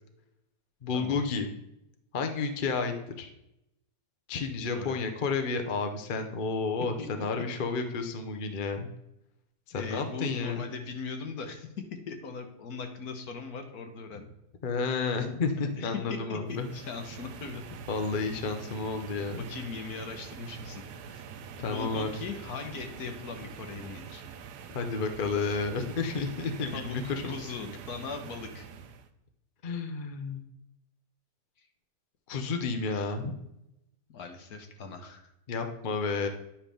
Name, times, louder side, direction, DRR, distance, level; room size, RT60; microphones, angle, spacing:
voice 1, 0.8-1.5 2.1-3.3 4.3-8.9 9.7-10.6 14.6-16.7 17.9-19.5 21.6-22.1 24.7-27.3 29.6-30.4 32.3-33.3 35.5-36.3, left 4 dB, 45° left, 6 dB, 0.7 m, -31 dB
voice 2, 9.7-14.3 15.7-17.6 19.4-21.2 21.6-24.2 26.7-28.7 31.6-31.7 34.1-35.2, left 4 dB, 65° left, 5 dB, 1.5 m, -40 dB
sound 1, 16.5-29.1, right 7 dB, 80° right, 1.2 m, -45 dB
10.0 x 5.7 x 3.4 m, 0.84 s
omnidirectional pair, 1.8 m